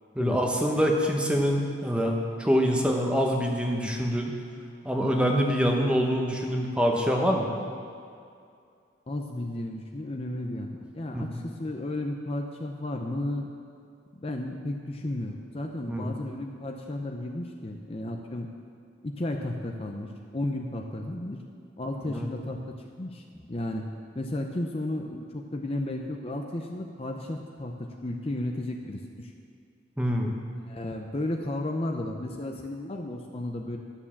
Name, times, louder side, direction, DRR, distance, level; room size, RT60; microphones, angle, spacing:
voice 1, 0.1-4.3 4.8-7.5 11.1-11.4 15.9-16.1 22.1-22.3 30.0-30.3, equal, 5° right, 1 dB, 1.0 m, -25 dB
voice 2, 9.1-13.5 14.2-18.5 19.0-21.4 21.8-23.8 24.2-29.3 30.7-33.8, left 1 dB, 30° left, 2 dB, 0.6 m, -33 dB
11.0 x 7.1 x 7.2 m, 2.4 s
head